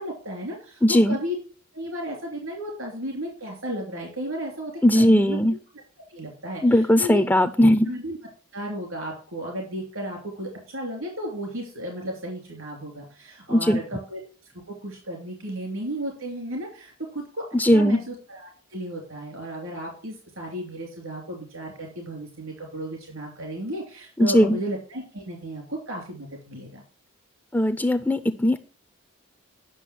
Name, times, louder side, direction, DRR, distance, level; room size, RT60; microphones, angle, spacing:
voice 1, 0.0-1.3 1.7-5.4 6.1-7.2 7.9-8.2 8.5-17.4 17.7-26.8, right 1 dB, 75° right, 1 dB, 3.1 m, -34 dB
voice 2, 0.8-1.2 4.8-5.6 6.6-7.9 13.5-13.8 17.5-18.0 24.2-24.6 27.5-28.6, equal, 10° left, 9 dB, 0.4 m, -19 dB
10.0 x 6.3 x 6.2 m, 0.38 s
head